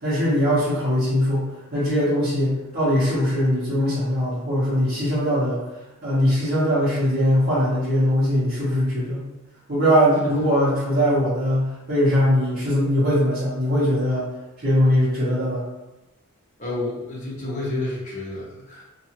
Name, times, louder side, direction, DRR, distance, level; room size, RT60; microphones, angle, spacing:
voice 1, 0.0-5.6 6.0-9.2 9.7-14.3 14.6-15.6, equal, 45° right, -10 dB, 0.9 m, -21 dB
voice 2, 16.6-18.8, left 2 dB, 35° left, -6 dB, 0.9 m, -30 dB
2.6 x 2.5 x 2.8 m, 1.0 s
head